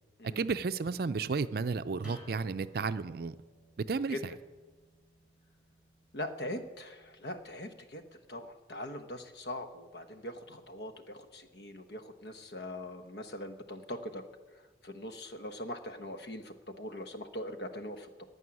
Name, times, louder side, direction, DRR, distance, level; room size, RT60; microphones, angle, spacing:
voice 1, 0.4-3.3 3.9-4.3, right 4 dB, 55° right, 14 dB, 0.4 m, -33 dB
sound 1, 2.0-7.4, right 1 dB, 5° right, 4.6 m, -56 dB
voice 2, 6.1-8.0 8.3-14.2 14.5-18.2, left 1 dB, 70° left, 8 dB, 1.1 m, -42 dB
15.5 x 5.5 x 9.8 m, 1.3 s
head